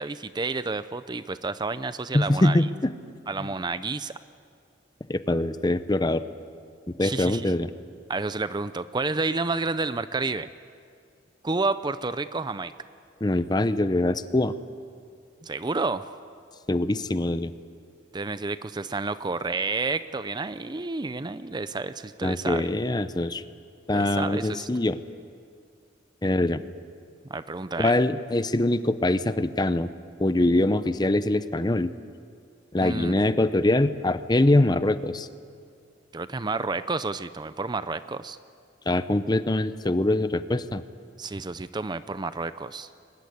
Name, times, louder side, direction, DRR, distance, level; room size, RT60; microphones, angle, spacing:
voice 1, 0.0-2.7 3.3-4.1 7.0-7.5 8.1-10.5 11.4-12.7 15.4-16.0 18.1-22.7 23.9-24.7 27.3-28.0 32.8-33.1 36.1-38.4 41.2-42.9, right 3 dB, 25° right, 13 dB, 0.5 m, -30 dB
voice 2, 2.1-2.9 3.4-3.5 5.1-6.2 7.0-7.7 13.2-14.5 16.7-17.5 22.2-23.4 23.9-25.0 26.2-26.6 27.8-29.9 30.2-31.9 32.7-35.3 38.9-40.8, left 1 dB, 25° left, 12 dB, 0.7 m, -23 dB
23.0 x 20.5 x 9.5 m, 2.2 s
head